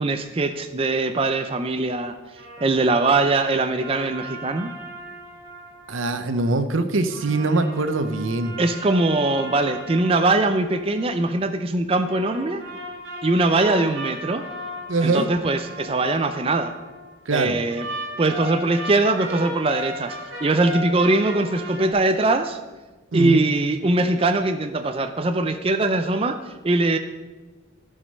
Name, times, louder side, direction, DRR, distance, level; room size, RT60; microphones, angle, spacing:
voice 1, 0.0-2.1 2.6-4.7 8.6-12.6 13.2-14.4 15.0-16.7 17.3-17.9 18.2-22.6 23.1-27.0, right 2 dB, 30° right, 8 dB, 0.4 m, -21 dB
sound 1, 2.3-6.5 7.0-11.4 12.0-17.1 17.7-21.9, equal, 65° right, 3.5 m, -37 dB
voice 2, 5.9-8.6 14.9-15.3 17.3-17.6 23.1-23.4, right 3 dB, 85° right, 10 dB, 0.7 m, -23 dB
14.5 x 5.1 x 5.4 m, 1.2 s
head